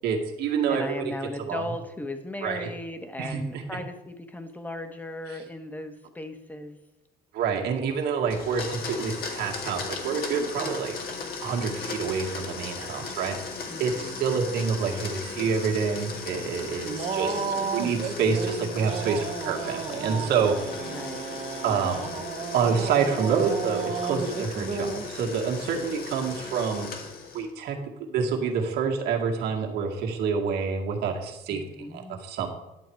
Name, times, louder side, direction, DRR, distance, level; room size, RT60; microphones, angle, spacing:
voice 1, 0.0-0.8 1.4-1.6 2.4-2.7 3.2-3.6 7.3-11.0 11.4-13.4 13.8-20.9 21.6-22.1 22.5-26.9 27.3-27.8 28.1-32.5, right 6 dB, 80° right, 1 dB, 2.0 m, -27 dB
voice 2, 0.7-6.8 13.7-14.6 16.9-17.8 20.9-21.4 21.7-22.0 31.5-32.2, left 1 dB, 10° left, 7 dB, 1.3 m, -38 dB
Domestic sounds home sounds, 8.3-27.5, left 4 dB, 60° left, 2.1 m, -37 dB
sound 1, 14.8-25.3 25.7-26.4, right 5 dB, 40° right, 1.2 m, -34 dB
11.5 x 7.8 x 4.7 m, 0.97 s
cardioid pair, 110°, 17 cm